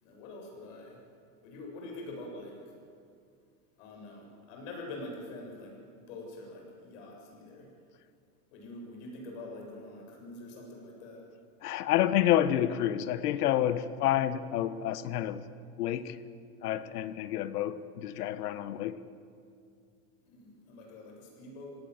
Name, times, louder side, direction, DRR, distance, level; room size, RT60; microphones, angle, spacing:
voice 1, 0.0-1.0 1.4-2.5 3.8-7.7 8.5-11.2 20.3-21.8, left 2 dB, 55° left, 0 dB, 7.6 m, -45 dB
voice 2, 11.6-15.4 15.8-16.2 16.6-19.0, left 11 dB, 75° left, 14 dB, 1.4 m, -29 dB
25.5 x 18.0 x 8.1 m, 2.4 s
supercardioid pair, 155°, 46 cm